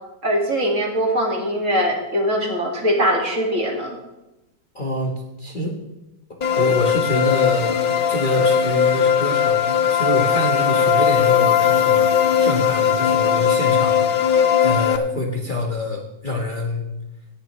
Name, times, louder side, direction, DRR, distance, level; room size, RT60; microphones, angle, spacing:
voice 1, 0.2-4.0, equal, 45° right, 1 dB, 2.5 m, -21 dB
voice 2, 4.7-5.8 6.5-7.8 8.1-14.3 14.6-16.8, left 1 dB, 30° left, 0 dB, 1.3 m, -26 dB
sound 1, 6.4-15.0, left 7 dB, 85° left, 0.4 m, -18 dB
17.5 x 11.0 x 3.2 m, 0.96 s
omnidirectional pair, 1.9 m